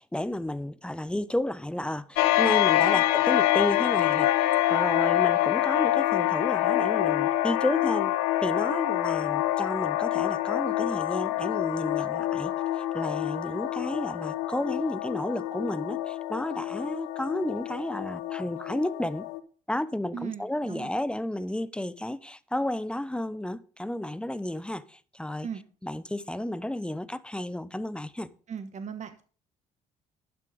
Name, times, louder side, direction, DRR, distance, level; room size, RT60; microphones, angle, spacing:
voice 1, 0.0-4.3 4.7-8.1 8.4-19.3 19.7-25.5 25.8-28.3, left 1 dB, 5° left, 0.8 m, -32 dB
sound 1, 2.2-19.4, left 14 dB, 90° left, 0.8 m, -26 dB
voice 2, 2.4-3.0 20.1-21.0 25.4-25.6 28.5-29.2, right 7 dB, 45° right, 1.2 m, -38 dB
11.5 x 7.1 x 5.1 m
supercardioid pair, 60°, 17 cm